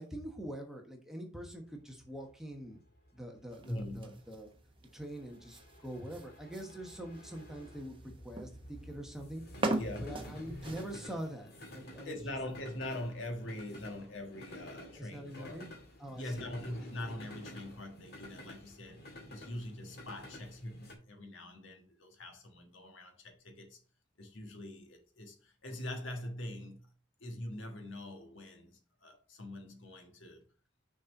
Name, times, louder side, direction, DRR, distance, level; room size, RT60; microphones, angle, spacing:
voice 1, 0.0-2.8 3.1-4.5 4.9-9.4 10.0-12.2 15.0-15.7 16.0-16.5, right 1 dB, ahead, 1.2 m, -44 dB
sound 1, 1.4-20.9, equal, 50° left, 2.0 m, -51 dB
sound 2, 3.5-11.1, right 2 dB, 25° right, 0.9 m, -42 dB
voice 2, 3.6-4.1 9.7-10.4 12.0-15.7 16.1-23.8 24.2-26.9 27.2-30.4, left 1 dB, 75° left, 1.6 m, -43 dB
6.3 x 4.3 x 5.3 m
head